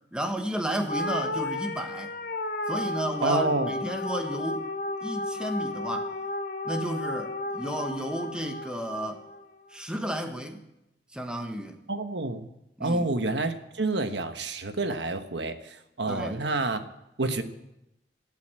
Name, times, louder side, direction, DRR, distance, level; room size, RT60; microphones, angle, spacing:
voice 1, 0.1-2.1 2.7-4.7 5.0-6.1 6.6-9.3 9.7-10.6 11.1-11.8 12.8-13.1 16.1-16.4, equal, 5° right, 5 dB, 1.3 m, -32 dB
sound 1, 0.9-9.4, left 2 dB, 55° left, 1.1 m, -33 dB
voice 2, 3.2-3.7 11.9-12.5 12.8-16.8 17.2-17.4, right 2 dB, 90° right, 8 dB, 1.3 m, -28 dB
15.5 x 8.3 x 8.8 m, 0.88 s
head